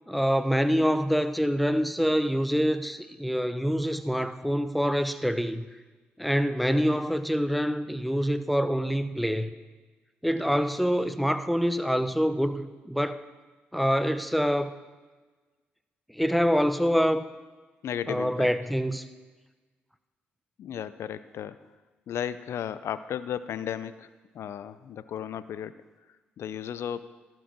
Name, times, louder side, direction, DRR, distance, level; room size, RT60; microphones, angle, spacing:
voice 1, 0.1-5.6 6.2-9.5 10.2-13.2 13.7-14.7 16.1-17.3 18.1-19.0, equal, ahead, 11 dB, 0.7 m, -25 dB
voice 2, 17.8-18.5 20.6-21.6 22.1-25.8 26.4-27.1, left 9 dB, 65° left, 14 dB, 0.5 m, -35 dB
12.0 x 4.5 x 7.4 m, 1.3 s
hypercardioid pair, 45°, 5 cm